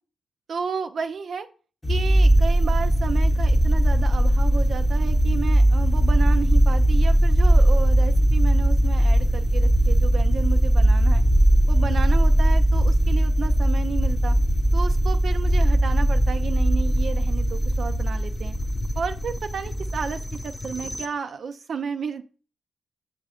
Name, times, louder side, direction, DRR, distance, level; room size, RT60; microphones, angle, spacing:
voice 1, 0.5-1.5 1.9-11.2 11.7-14.4 14.7-18.5 19.0-22.2, right 5 dB, 65° right, 7 dB, 0.3 m, -32 dB
sound 1, 1.8-21.1, right 1 dB, 20° left, 0.7 m, -19 dB
6.2 x 3.2 x 4.9 m, 0.38 s
supercardioid pair, 55°, 0 cm